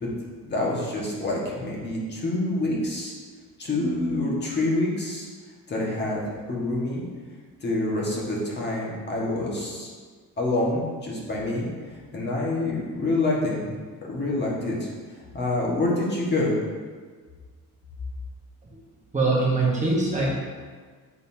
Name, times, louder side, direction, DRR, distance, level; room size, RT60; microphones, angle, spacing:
voice 1, 0.4-3.1 3.6-5.3 5.7-6.2 6.5-7.0 7.6-9.9 10.4-11.7 12.1-13.7 14.0-14.9 15.3-16.5, left 2 dB, 30° left, -4 dB, 1.5 m, -26 dB
voice 2, 19.1-20.3, right 3 dB, 20° right, -5 dB, 1.2 m, -22 dB
9.4 x 4.0 x 2.8 m, 1.6 s
cardioid pair, 150°, 36 cm